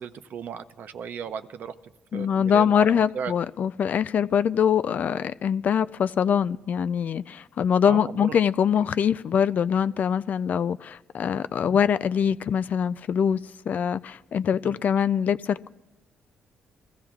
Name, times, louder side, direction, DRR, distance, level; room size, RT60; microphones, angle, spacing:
voice 1, 0.0-1.7 2.1-3.3 7.9-8.4 8.8-8.9 14.6-14.8, right 7 dB, 65° right, 0.7 m, -36 dB
voice 2, 2.1-13.4 13.7-15.7, left 8 dB, 55° left, 0.4 m, -23 dB
22.5 x 15.0 x 2.4 m
supercardioid pair, 65°, 3 cm